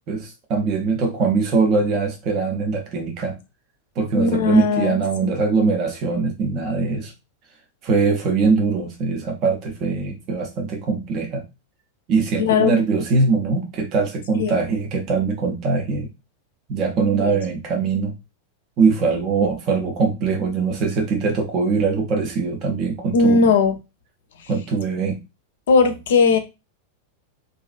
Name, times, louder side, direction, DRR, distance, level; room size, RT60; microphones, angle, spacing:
voice 1, 0.1-3.4 4.0-7.1 7.8-11.4 12.1-16.1 16.7-18.1 18.8-23.5 24.5-25.2, right 4 dB, 40° right, 3 dB, 0.5 m, -22 dB
voice 2, 4.1-5.0 5.2-5.3 12.4-12.7 14.3-14.6 17.2-17.4 23.1-23.8 24.4-24.5 25.7-26.4, left 4 dB, 60° left, 8 dB, 0.5 m, -18 dB
2.4 x 2.3 x 2.4 m, 0.26 s
figure-of-eight pair, 90°, 0 cm